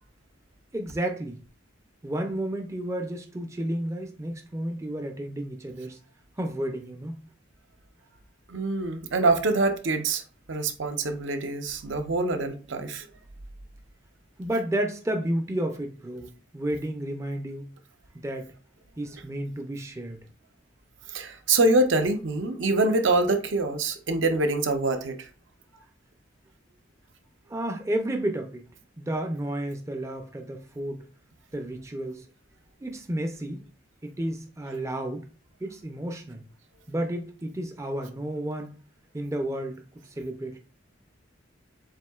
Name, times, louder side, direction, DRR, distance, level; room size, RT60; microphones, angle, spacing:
voice 1, 0.7-1.4 2.0-6.0 6.4-7.2 14.4-17.7 18.1-18.5 19.0-20.2 27.5-28.6 29.0-31.1 31.5-32.3 32.8-33.6 34.0-35.3 35.6-36.4 36.9-38.8 39.1-40.6, right 1 dB, 15° right, 0.5 m, -31 dB
voice 2, 8.5-10.2 10.5-13.1 21.1-25.3, right 2 dB, 65° right, 0.7 m, -25 dB
7.3 x 2.7 x 2.3 m
head